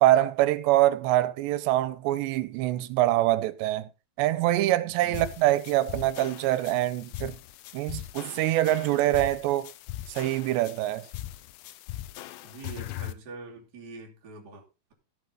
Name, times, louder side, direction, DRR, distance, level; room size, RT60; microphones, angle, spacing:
voice 1, 0.0-3.9 4.2-7.4 7.7-9.7 10.1-11.1, right 15 dB, 85° right, 3.0 m, -24 dB
voice 2, 4.8-5.6 12.4-14.6, right 3 dB, 25° right, 2.8 m, -45 dB
sound 1, 5.1-13.1, left 14 dB, 85° left, 3.1 m, -40 dB
14.5 x 8.3 x 3.9 m
omnidirectional pair, 5.0 m